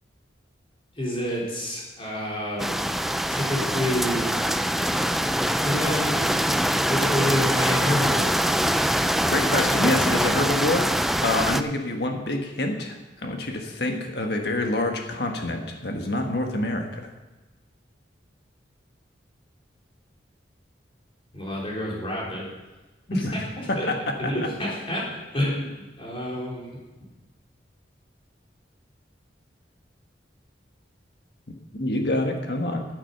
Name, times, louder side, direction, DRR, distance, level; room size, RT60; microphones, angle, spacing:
voice 1, 1.0-2.7 3.3-4.3 5.6-6.6 6.9-8.8 13.3-13.5 21.3-22.5 23.1-23.9 24.2-26.8, left 1 dB, 30° left, -5 dB, 3.8 m, -28 dB
sound 1, 2.6-11.6, equal, ahead, 0.3 m, -23 dB
voice 2, 9.3-10.8 11.2-13.0 13.2-17.0 23.7-24.3 31.7-32.9, left 2 dB, 60° left, 3 dB, 1.6 m, -26 dB
10.5 x 8.8 x 6.8 m, 1.1 s
head